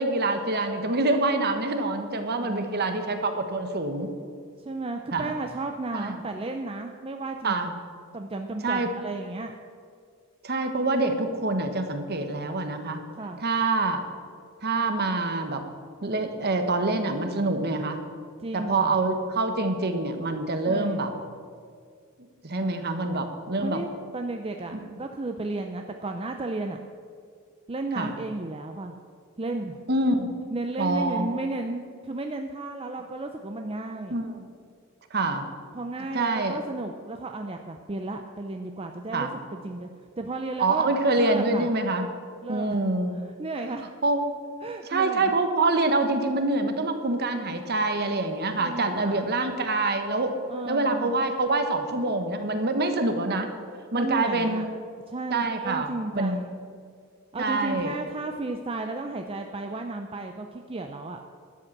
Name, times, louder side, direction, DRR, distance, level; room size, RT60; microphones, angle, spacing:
voice 1, 0.0-4.1 5.1-5.3 5.9-6.2 7.4-7.7 8.6-8.9 10.4-13.0 13.4-14.0 14.6-15.6 16.0-18.0 18.5-21.1 22.4-23.8 24.7-24.8 27.9-28.1 29.9-30.3 30.8-31.4 34.1-34.4 35.1-35.4 36.1-36.6 39.1-39.3 40.6-42.1 42.5-43.1 44.0-44.3 44.9-50.3 50.6-53.5 53.9-54.7 55.3-56.4 57.4-57.9, right 2 dB, 45° right, 7 dB, 1.2 m, -26 dB
voice 2, 2.4-2.9 4.6-7.6 8.1-9.5 13.1-13.4 18.4-18.9 20.7-21.0 23.6-26.8 27.7-28.9 29.4-29.8 30.5-34.2 35.7-39.9 40.2-40.9 41.2-41.7 42.4-42.8 43.4-43.8 44.6-45.3 48.6-49.3 50.5-51.1 53.9-54.7 55.1-56.5 57.3-61.2, right 2 dB, 25° right, 4 dB, 0.6 m, -33 dB
12.0 x 7.9 x 7.3 m, 2.2 s
head